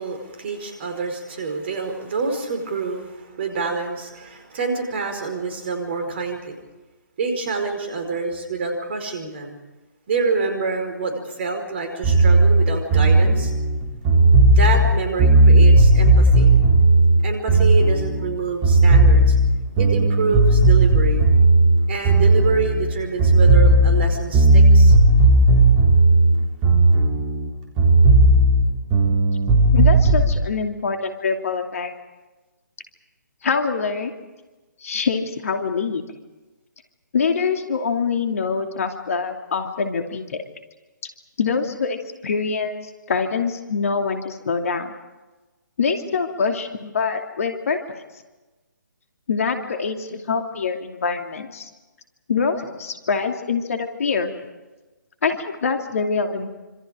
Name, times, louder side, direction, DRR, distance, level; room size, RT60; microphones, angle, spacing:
voice 1, 0.0-6.6 7.2-9.6 10.1-13.5 14.1-14.2 14.5-16.5 17.2-19.4 19.8-21.2 21.9-25.0, right 4 dB, 35° right, 5 dB, 4.9 m, -27 dB
sound 1, 12.0-18.3 18.6-22.9 23.2-27.5 27.8-30.3, right 2 dB, 20° right, 3.6 m, -14 dB
voice 2, 29.7-31.9 33.4-34.1 34.8-36.0 37.1-40.4 41.4-44.9 45.8-48.0 49.3-51.7 52.3-54.3 55.2-56.5, left 5 dB, 50° left, 5 dB, 2.7 m, -24 dB
26.5 x 26.5 x 5.1 m, 1.1 s
figure-of-eight pair, 140°, 10 cm